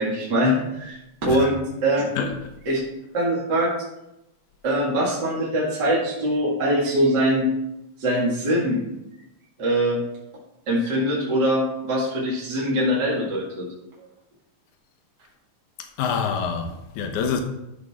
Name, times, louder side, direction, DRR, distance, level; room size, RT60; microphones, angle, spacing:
voice 1, 0.0-2.1 2.7-2.8 3.1-3.7 4.6-7.5 8.0-8.8 9.6-10.0 10.7-13.7, equal, 35° right, 2.3 m, -22 dB
voice 2, 2.2-2.5 16.0-17.4, left 6 dB, 70° left, 2.4 m, -26 dB
13.0 x 5.8 x 3.7 m
omnidirectional pair, 3.7 m